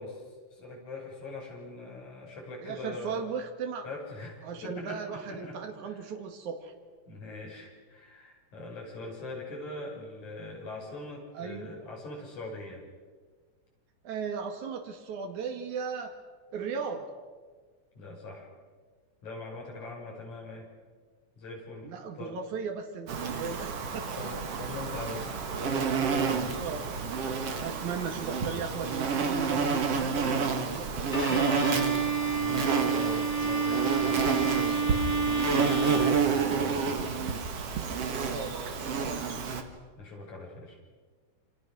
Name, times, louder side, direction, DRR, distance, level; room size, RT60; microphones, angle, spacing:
voice 1, 0.0-3.2 3.8-6.1 7.1-12.8 18.0-18.5 19.2-20.7 21.4-22.4 23.8-27.0 27.4-27.8 32.2-37.3 40.0-40.8, left 2 dB, 70° left, -2 dB, 7.5 m, -42 dB
voice 2, 2.6-3.9 4.4-6.7 11.3-11.7 14.0-16.2 16.5-17.1 21.8-24.2 26.6-26.8 27.6-31.9 38.3-39.7, right 5 dB, 75° right, 3 dB, 3.6 m, -37 dB
Insect, 23.1-39.6, right 5 dB, 55° right, 2.9 m, -30 dB
Bowed string instrument, 31.1-37.0, right 6 dB, 20° left, 0.9 m, -28 dB
28.5 x 27.0 x 6.4 m, 1.5 s
omnidirectional pair, 3.5 m